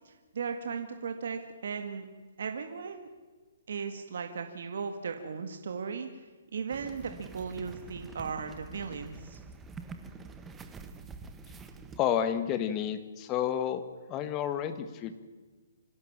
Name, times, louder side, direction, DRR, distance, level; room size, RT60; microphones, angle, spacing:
voice 1, 0.0-2.1 2.4-3.1 3.7-6.3 6.5-9.4, right 5 dB, 65° right, 6 dB, 2.0 m, -37 dB
sound 1, 6.7-12.0, right 4 dB, 10° right, 1.2 m, -46 dB
voice 2, 12.0-13.8 14.1-15.1, left 9 dB, 20° left, 10 dB, 1.6 m, -30 dB
26.0 x 16.5 x 7.4 m, 1.3 s
hypercardioid pair, 165°, 0 cm